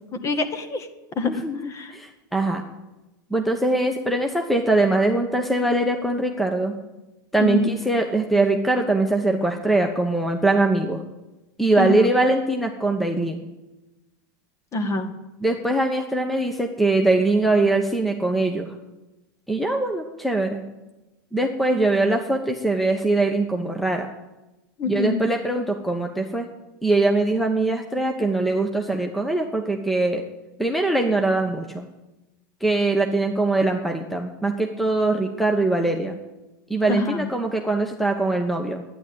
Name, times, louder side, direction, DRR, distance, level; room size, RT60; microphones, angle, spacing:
voice 1, 0.1-0.9 1.2-1.3 1.7-1.9 7.4-7.7 11.8-11.9 14.7-15.1 24.8-25.2 36.9-37.3, left 2 dB, 30° left, 8 dB, 1.9 m, -25 dB
voice 2, 1.2-2.6 3.3-6.7 7.3-11.0 11.6-13.4 15.4-18.7 19.5-20.6 21.3-24.1 24.9-26.5 26.8-30.2 30.6-31.9 32.6-36.2 36.7-38.8, right 2 dB, ahead, 4 dB, 1.2 m, -22 dB
11.5 x 10.0 x 9.5 m, 1.0 s
hypercardioid pair, 120°, 11 cm